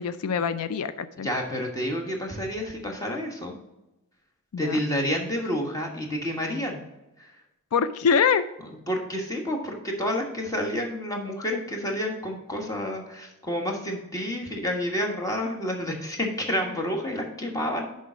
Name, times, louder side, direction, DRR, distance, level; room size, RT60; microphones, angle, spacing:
voice 1, 0.0-1.3 4.5-4.8 7.7-8.4, left 6 dB, 85° left, 13 dB, 0.4 m, -24 dB
voice 2, 1.2-3.5 4.6-6.8 7.2-7.3 8.9-17.9, equal, 15° left, 1 dB, 1.3 m, -29 dB
6.7 x 5.4 x 5.0 m, 0.95 s
head